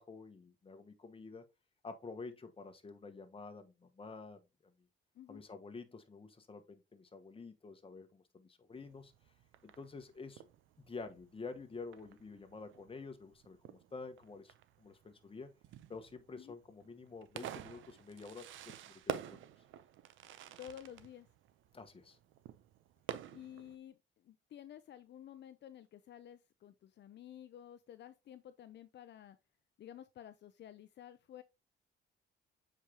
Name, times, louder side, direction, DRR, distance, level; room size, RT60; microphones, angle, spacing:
voice 1, 0.0-1.4 1.8-4.7 5.3-9.1 9.6-10.5 10.9-15.5 15.9-19.5 21.7-22.2, left 4 dB, 25° left, 1.3 m, -49 dB
Fireworks, 8.7-23.8, right 11 dB, 80° right, 0.7 m, -49 dB
voice 2, 20.6-21.3 23.3-29.4 29.8-31.4, left 10 dB, 60° left, 0.6 m, -52 dB
7.2 x 5.0 x 2.9 m
cardioid pair, 90°, 20 cm